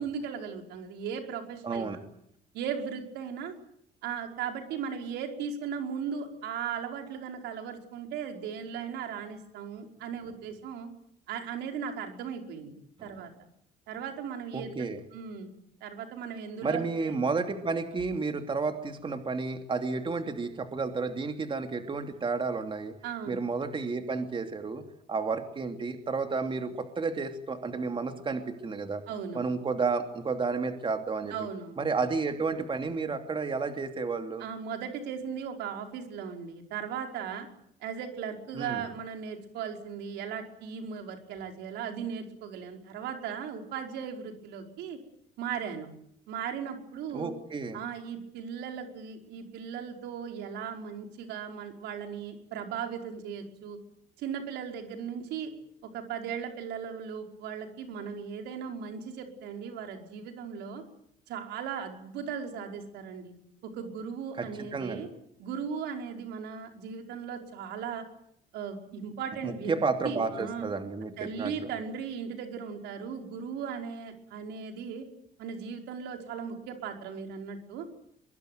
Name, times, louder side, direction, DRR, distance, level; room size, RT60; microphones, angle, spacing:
voice 1, 0.0-2.0 2.5-3.5 4.0-10.9 11.3-12.7 13.0-13.3 13.9-15.5 15.8-17.2 23.0-23.4 29.1-29.4 31.3-31.8 34.4-37.5 37.8-45.0 45.4-45.9 46.3-47.3 47.7-53.8 54.2-55.5 55.8-60.8 61.3-63.3 63.6-65.1 65.4-68.1 68.5-69.7 70.0-70.7 71.2-75.1 75.4-77.9, right 7 dB, 85° right, 4 dB, 5.2 m, -37 dB
voice 2, 1.6-2.0 13.0-13.1 14.5-15.0 16.6-22.9 23.3-29.0 29.3-31.3 31.8-34.4 38.5-38.8 47.1-47.8 64.4-65.0 69.4-71.7, right 4 dB, 30° right, 6 dB, 2.9 m, -31 dB
23.5 x 23.0 x 9.4 m, 0.72 s
cardioid pair, 110°, 17 cm